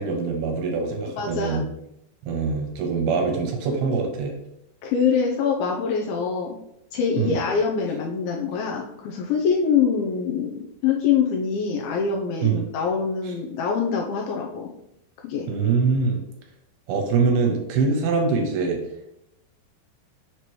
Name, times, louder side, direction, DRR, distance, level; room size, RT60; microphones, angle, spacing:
voice 1, 0.0-1.6 2.2-4.4 7.2-7.4 12.4-12.7 13.3-13.4 15.5-16.2 16.9-18.8, right 4 dB, 75° right, 2 dB, 2.6 m, -23 dB
voice 2, 1.1-1.6 4.8-6.6 6.9-14.7 15.2-15.5, left 6 dB, 85° left, 0 dB, 2.2 m, -24 dB
6.7 x 3.0 x 4.7 m, 0.80 s
omnidirectional pair, 4.8 m